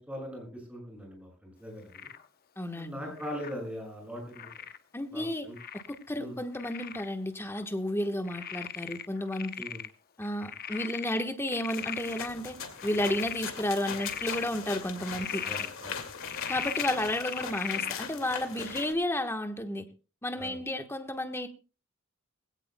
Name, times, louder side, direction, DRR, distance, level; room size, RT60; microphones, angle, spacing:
voice 1, 0.0-2.1 2.7-4.6 5.1-5.6 6.2-6.4 9.6-9.8 15.4-16.0 18.5-18.7 20.3-20.6, equal, 5° right, 1 dB, 6.6 m, -41 dB
Frog, 1.9-2.3 3.2-3.6 4.3-4.8 5.6-6.0 6.6-7.1 7.5-7.6 8.3-9.9 10.2-12.3 12.8-13.4 13.8-14.5 15.0-15.7 16.2-18.0 18.6-18.9, left 9 dB, 45° left, 0.8 m, -38 dB
voice 2, 2.6-3.0 4.9-5.5 5.9-9.5 10.2-12.6 12.8-15.4 16.5-19.8 20.2-21.5, left 1 dB, 10° left, 6 dB, 1.2 m, -32 dB
sound 1, 11.7-18.9, left 6 dB, 75° left, 2.3 m, -40 dB
20.0 x 17.0 x 2.2 m, 0.33 s
head